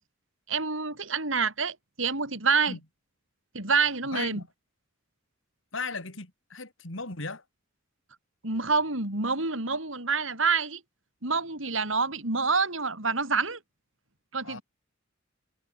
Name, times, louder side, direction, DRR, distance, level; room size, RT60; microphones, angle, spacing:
voice 1, 0.5-2.8 3.5-4.4 8.4-10.8 11.2-13.6 14.3-14.6, right 4 dB, 75° right, 6.1 m, -27 dB
voice 2, 4.1-4.5 5.7-7.4 14.4-14.6, left 4 dB, 75° left, 3.8 m, -36 dB
head